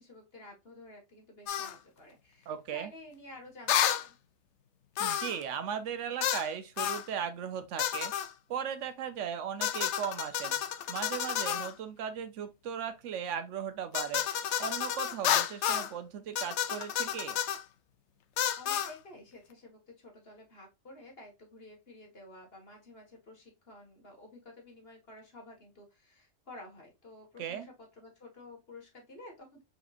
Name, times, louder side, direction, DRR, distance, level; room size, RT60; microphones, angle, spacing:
voice 1, 0.0-4.2 18.6-29.6, left 1 dB, 50° left, 2.1 m, -51 dB
sound 1, 1.5-1.7 3.7-4.0 5.0-5.4 6.2-6.5 6.8-7.1 7.8-8.3 9.6-11.7 13.9-15.9 16.4-17.6 18.4-18.9, left 10 dB, 70° left, 0.9 m, -31 dB
voice 2, 2.5-2.9 5.0-8.1 8.5-10.6 10.9-14.2 14.6-17.4 27.4-27.7, right 8 dB, 75° right, 1.1 m, -37 dB
4.9 x 4.2 x 2.5 m
omnidirectional pair, 1.3 m